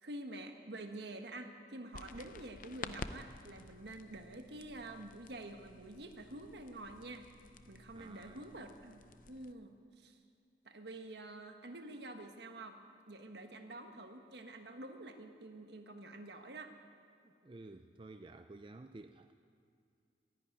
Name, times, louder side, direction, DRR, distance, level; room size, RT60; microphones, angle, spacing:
voice 1, 0.0-7.3 7.7-10.2 10.6-12.8 13.1-16.7, right 2 dB, 65° right, 5 dB, 1.4 m, -48 dB
sound 1, 1.9-9.5, left 4 dB, 45° left, 0.6 m, -51 dB
voice 2, 7.9-8.5 17.2-19.3, right 2 dB, 30° right, 7 dB, 0.4 m, -53 dB
13.5 x 11.0 x 9.8 m, 2.5 s
head